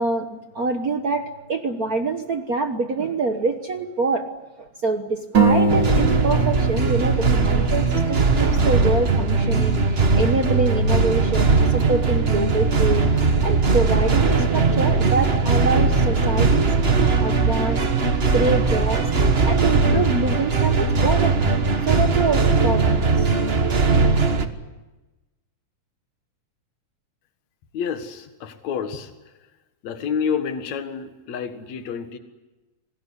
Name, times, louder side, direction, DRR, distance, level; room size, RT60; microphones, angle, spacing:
voice 1, 0.0-4.3 4.6-13.0 13.4-17.9 18.3-19.1 19.4-21.5 21.8-23.3 23.8-23.9, right 3 dB, 60° right, 7 dB, 0.9 m, -25 dB
sound 1, 5.3-9.0, right 3 dB, 35° right, 3.4 m, -23 dB
sound 2, 5.7-24.5, right 4 dB, 80° right, 0.5 m, -19 dB
voice 2, 27.7-29.1 29.8-32.2, left 6 dB, 65° left, 8 dB, 2.9 m, -29 dB
26.5 x 19.5 x 9.9 m, 1.1 s
omnidirectional pair, 3.5 m